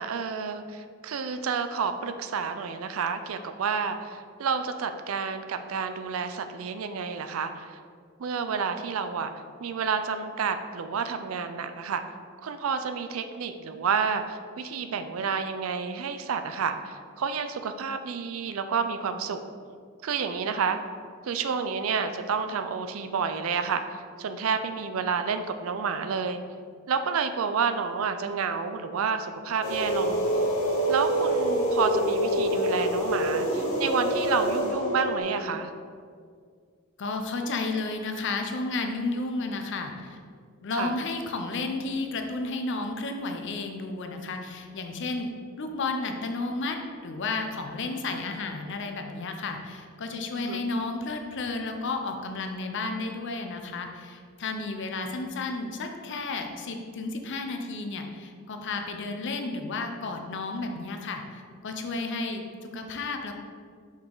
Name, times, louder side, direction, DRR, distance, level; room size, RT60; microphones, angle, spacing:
voice 1, 0.0-7.7 8.2-9.3 9.6-12.0 12.4-19.4 20.0-20.8 21.2-26.4 26.9-30.3 30.9-35.7 40.7-40.9 50.4-50.6, right 5 dB, 80° right, 9 dB, 0.4 m, -30 dB
sound 1, 29.6-35.2, equal, 85° left, 1.3 m, -26 dB
voice 2, 37.0-40.2 40.6-45.3 45.6-62.4 62.7-63.3, left 3 dB, 60° left, 5 dB, 0.6 m, -32 dB
5.4 x 4.8 x 3.9 m, 2.1 s
head